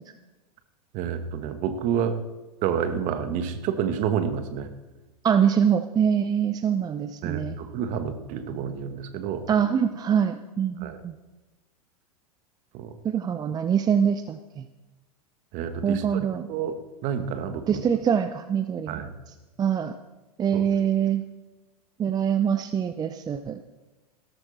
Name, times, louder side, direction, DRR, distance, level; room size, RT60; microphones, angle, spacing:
voice 1, 0.9-2.2 2.6-4.7 7.2-9.5 10.8-11.0 12.7-12.9 15.5-17.8 18.9-19.1 20.5-20.6, right 8 dB, 40° right, 8 dB, 1.7 m, -29 dB
voice 2, 5.2-7.6 9.5-11.1 13.0-14.6 15.8-16.5 17.7-19.0 19.6-19.9 20.4-21.2 22.0-23.7, right 8 dB, 20° right, 10 dB, 0.7 m, -24 dB
17.0 x 13.5 x 4.3 m, 1.1 s
figure-of-eight pair, 100°, 19 cm